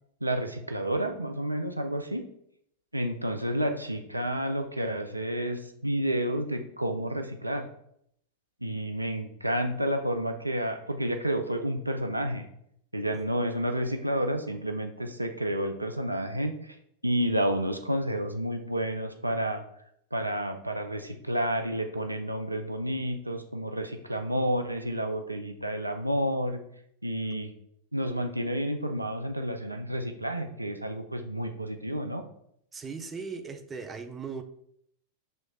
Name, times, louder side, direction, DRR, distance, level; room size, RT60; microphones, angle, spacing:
voice 1, 0.2-2.3 2.9-7.7 8.6-12.5 12.9-16.6 17.0-19.6 20.1-26.6 27.0-27.5 27.9-32.3, equal, 85° right, 6 dB, 0.4 m, -30 dB
voice 2, 32.7-34.4, right 5 dB, 20° right, 6 dB, 0.4 m, -38 dB
6.2 x 3.0 x 2.3 m, 0.71 s
figure-of-eight pair, 90°, 0 cm